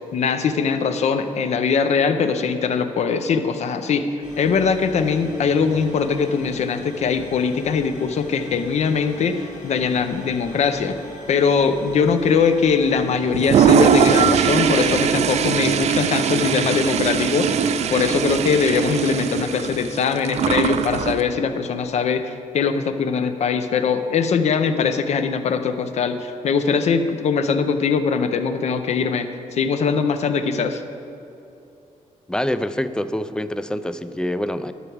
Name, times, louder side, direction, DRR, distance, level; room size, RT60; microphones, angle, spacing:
voice 1, 0.1-4.0 4.4-11.0 11.3-17.6 17.9-30.8, left 5 dB, 55° left, 9 dB, 0.7 m, -21 dB
sound 1, 4.2-22.0, left 1 dB, 75° left, 1.9 m, -42 dB
Toilet flush, 13.3-21.2, right 7 dB, 55° right, 0.5 m, -20 dB
voice 2, 32.3-34.7, left 1 dB, 5° left, 12 dB, 0.3 m, -25 dB
11.0 x 4.7 x 7.9 m, 2.8 s
cardioid pair, 120°, 13 cm